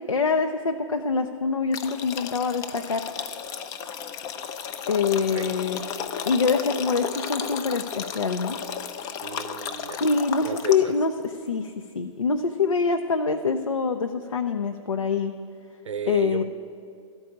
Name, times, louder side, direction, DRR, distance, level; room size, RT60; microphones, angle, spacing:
voice 1, 0.1-3.1 4.9-8.6 10.0-15.3 16.1-16.4, left 5 dB, 80° left, 5 dB, 0.5 m, -25 dB
sound 1, 1.7-11.0, left 8 dB, 20° left, 0.4 m, -34 dB
voice 2, 9.2-10.0 10.4-10.9 15.8-16.4, right 7 dB, 70° right, 12 dB, 0.7 m, -33 dB
13.5 x 4.7 x 8.5 m, 2.3 s
figure-of-eight pair, 115°, 16 cm